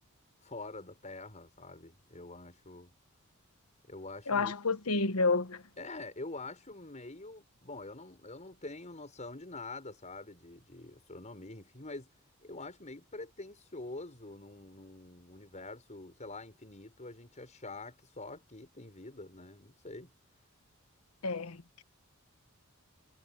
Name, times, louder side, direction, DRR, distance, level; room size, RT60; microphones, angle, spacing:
voice 1, 0.4-2.9 3.9-4.6 5.8-12.1 12.4-20.1, left 2 dB, 35° left, 6.4 m, -46 dB
voice 2, 4.3-5.6 21.2-21.8, left 3 dB, 80° left, 1.3 m, -30 dB
head